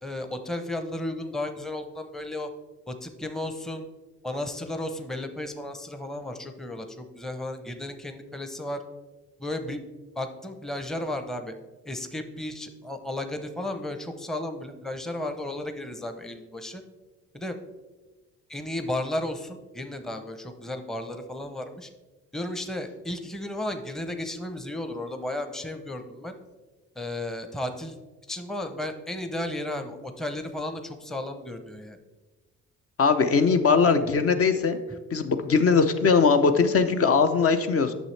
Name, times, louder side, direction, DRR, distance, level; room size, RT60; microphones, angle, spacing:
voice 1, 0.0-2.5 2.9-3.9 4.2-8.8 9.4-9.8 10.2-11.5 11.8-16.8 17.3-17.6 18.5-21.9 22.3-26.4 27.0-28.0 28.3-32.0, left 1 dB, ahead, 7 dB, 0.6 m, -34 dB
voice 2, 33.0-34.8 35.1-37.9, left 5 dB, 50° left, 8 dB, 0.6 m, -20 dB
9.0 x 6.3 x 3.2 m, 1.2 s
cardioid pair, 90°, 30 cm